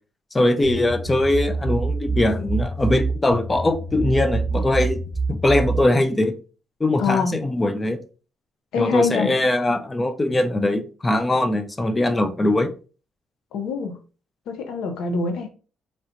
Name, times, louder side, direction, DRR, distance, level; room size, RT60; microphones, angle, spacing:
voice 1, 0.3-5.0 5.3-6.3 6.8-8.0 8.8-12.7, left 1 dB, 20° left, 0.4 m, -21 dB
sound 1, 0.6-5.8, right 3 dB, 40° left, 1.4 m, -26 dB
voice 2, 7.0-7.4 8.7-9.3 13.5-14.0 14.5-15.5, left 5 dB, 85° left, 0.5 m, -24 dB
3.2 x 2.8 x 2.5 m
cardioid pair, 90°, 0 cm